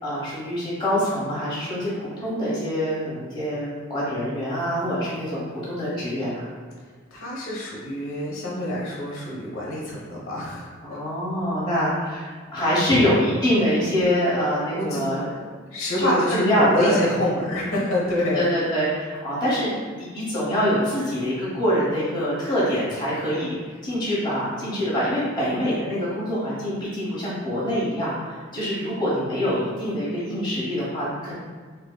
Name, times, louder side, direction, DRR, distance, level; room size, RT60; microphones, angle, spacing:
voice 1, 0.0-6.5 10.8-15.3 16.0-17.0 18.3-31.4, equal, 25° left, -9 dB, 1.1 m, -25 dB
voice 2, 7.1-11.1 12.9-13.1 14.7-15.0 15.7-18.4, left 1 dB, 90° left, -4 dB, 0.9 m, -26 dB
5.2 x 2.1 x 2.3 m, 1.5 s
head